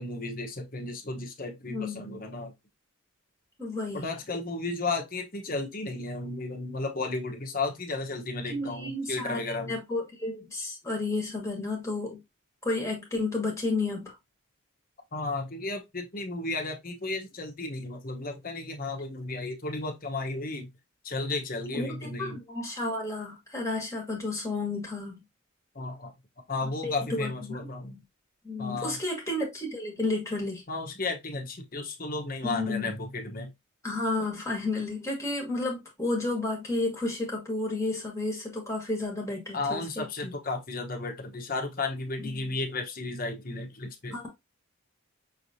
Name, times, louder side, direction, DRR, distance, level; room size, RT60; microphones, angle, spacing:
voice 1, 0.0-2.5 3.9-9.8 15.1-20.7 21.0-22.4 25.7-26.1 26.5-27.9 28.6-29.0 30.7-33.5 39.5-44.2, left 3 dB, 40° left, 1.0 m, -34 dB
voice 2, 1.7-2.2 3.6-4.0 8.5-9.4 9.7-12.2 12.6-14.1 21.7-25.2 26.8-28.0 28.4-30.6 32.4-32.9 33.8-40.3 42.3-42.5 44.1-44.3, left 2 dB, 15° left, 1.5 m, -32 dB
6.0 x 3.1 x 2.7 m
head